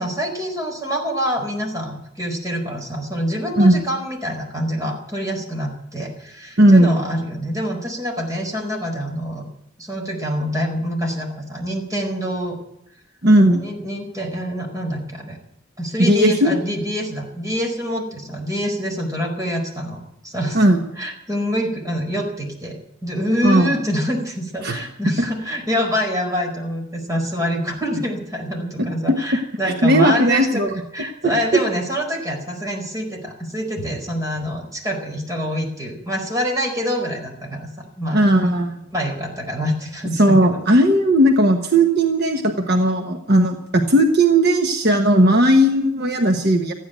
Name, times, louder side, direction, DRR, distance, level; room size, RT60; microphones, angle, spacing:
voice 1, 0.0-9.5 9.8-12.6 13.6-15.4 15.8-22.8 23.0-30.6 30.9-37.7 38.0-38.2 38.9-40.7, equal, 20° right, 1 dB, 4.7 m, -26 dB
voice 2, 6.6-7.0 13.2-13.6 16.0-16.5 20.5-20.8 23.4-23.7 24.6-24.8 28.8-29.2 29.8-30.7 38.1-38.8 40.2-46.7, right 1 dB, 60° right, 4 dB, 1.3 m, -16 dB
15.0 x 10.5 x 9.1 m, 0.80 s
head